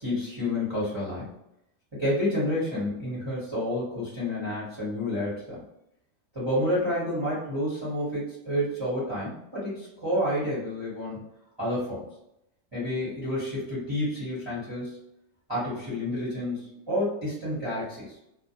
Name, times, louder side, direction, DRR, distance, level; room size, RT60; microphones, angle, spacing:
voice 1, 0.0-1.3 2.0-5.6 6.3-11.2 11.6-12.0 12.7-15.0 15.5-18.1, left 1 dB, 20° right, -9 dB, 0.9 m, -29 dB
2.5 x 2.1 x 2.7 m, 0.81 s
omnidirectional pair, 1.4 m